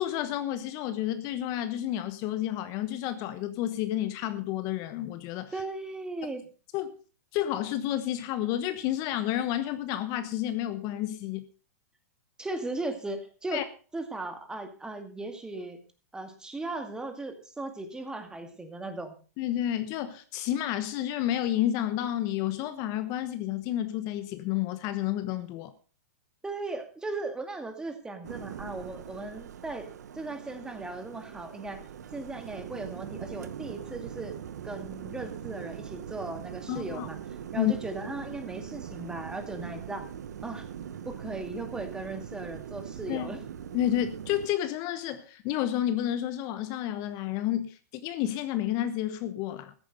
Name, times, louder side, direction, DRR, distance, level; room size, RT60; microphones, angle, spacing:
voice 1, 0.0-5.5 6.7-7.0 7.3-11.4 13.5-13.6 19.4-25.7 36.7-37.1 37.6-37.7 43.1-43.3 43.7-49.7, left 12 dB, 40° left, 11 dB, 1.2 m, -30 dB
voice 2, 5.5-6.5 12.4-13.6 13.9-15.8 16.1-19.1 26.4-31.8 32.1-34.3 34.6-37.2 37.5-40.1 40.4-40.7 41.0-43.4, right 2 dB, 10° right, 7 dB, 2.2 m, -37 dB
sound 1, 28.2-44.5, right 8 dB, 80° right, 1.1 m, -41 dB
14.0 x 10.5 x 5.2 m, 0.37 s
hypercardioid pair, 125°, 9 cm